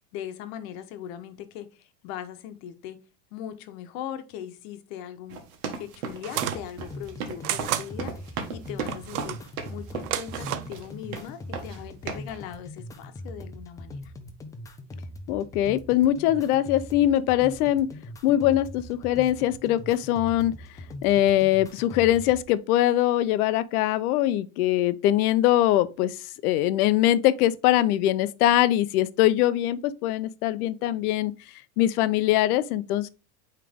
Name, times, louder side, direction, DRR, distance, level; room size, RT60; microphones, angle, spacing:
voice 1, 0.1-3.0 3.3-5.4 5.8-9.4 9.7-14.1, left 10 dB, 65° left, 1.1 m, -39 dB
sound 1, 5.3-10.9 11.1-11.8 12.1-12.4, right 6 dB, 70° right, 1.6 m, -35 dB
sound 2, 6.2-6.6 7.4-7.9 8.9-9.4 10.0-10.7, right 12 dB, 90° right, 0.8 m, -31 dB
sound 3, 6.4-22.4, left 1 dB, 10° left, 0.3 m, -41 dB
voice 2, 15.3-17.9 18.2-20.5 21.0-26.2 26.4-31.3 31.8-33.1, left 13 dB, 80° left, 0.7 m, -22 dB
8.8 x 3.3 x 3.5 m
supercardioid pair, 140°, 44 cm